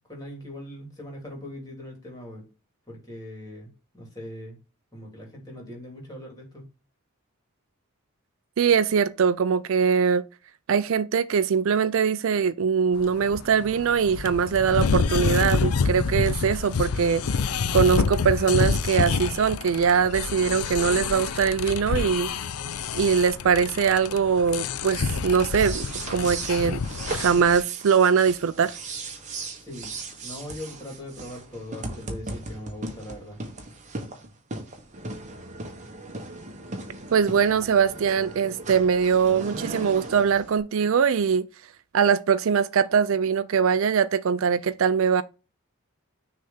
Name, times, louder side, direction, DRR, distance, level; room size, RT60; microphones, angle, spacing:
voice 1, 0.0-2.4 2.9-4.6 4.9-6.6 29.6-29.9 30.2-33.4, left 1 dB, 15° left, 2.6 m, -40 dB
voice 2, 8.6-10.2 10.7-17.2 17.7-22.3 22.9-26.8 27.1-28.8 37.1-41.5 41.9-45.2, right 6 dB, 60° right, 0.4 m, -22 dB
sound 1, 13.0-27.6, left 5 dB, 85° left, 0.5 m, -28 dB
sound 2, 25.3-40.6, right 2 dB, 35° right, 1.1 m, -37 dB
6.4 x 3.4 x 5.6 m
head